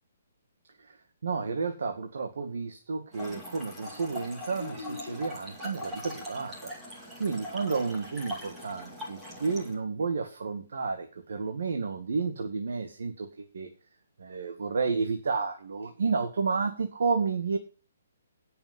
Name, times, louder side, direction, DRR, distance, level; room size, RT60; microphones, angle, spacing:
voice 1, 1.2-6.7 7.2-13.7 14.2-17.6, right 4 dB, 60° right, 6 dB, 2.0 m, -31 dB
Trickle dribble / Fill (with liquid), 3.1-9.8, left 1 dB, 5° right, 2.4 m, -41 dB
17.5 x 7.0 x 5.4 m, 0.37 s
hypercardioid pair, 180°, 0 cm